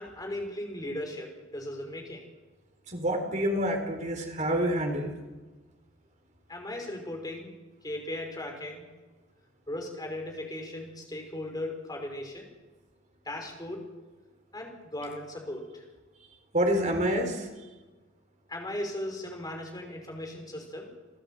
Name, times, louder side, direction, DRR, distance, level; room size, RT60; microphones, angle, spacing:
voice 1, 0.0-2.3 6.5-7.5 7.8-8.9 9.7-12.5 13.3-13.8 14.5-15.8 18.5-20.9, left 1 dB, 20° left, 2 dB, 5.4 m, -37 dB
voice 2, 2.9-5.2 16.5-17.5, equal, 40° right, 4 dB, 4.3 m, -27 dB
29.0 x 14.0 x 7.9 m, 1.2 s
head